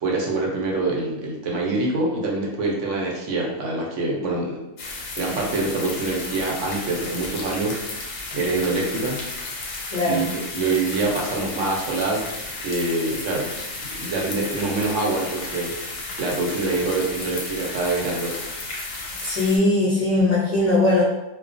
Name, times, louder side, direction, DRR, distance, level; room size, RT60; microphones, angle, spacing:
voice 1, 0.0-4.6 4.9-7.8 8.3-9.2 10.0-12.3 12.6-13.5 13.8-15.7 16.2-18.4, right 3 dB, 70° right, -2 dB, 0.9 m, -25 dB
sound 1, 4.8-19.6, left 3 dB, 85° left, 1.0 m, -33 dB
voice 2, 19.2-21.0, left 2 dB, 55° left, -9 dB, 0.4 m, -20 dB
2.3 x 2.2 x 2.4 m, 0.97 s
omnidirectional pair, 1.4 m